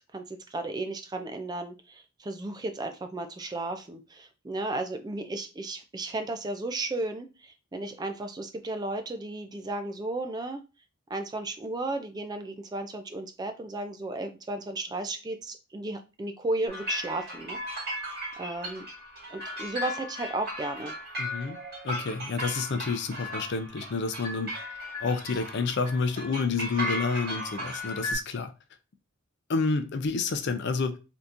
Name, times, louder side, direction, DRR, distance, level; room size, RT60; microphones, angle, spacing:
voice 1, 0.0-10.6 11.1-18.9 19.3-20.9, right 2 dB, 20° right, 0.3 m, -34 dB
sound 1, 16.7-28.1, left 1 dB, 50° right, 1.9 m, -36 dB
voice 2, 21.2-21.6 21.8-24.5 25.0-28.5 29.5-31.0, left 4 dB, 55° left, 0.4 m, -29 dB
3.5 x 2.7 x 2.5 m
head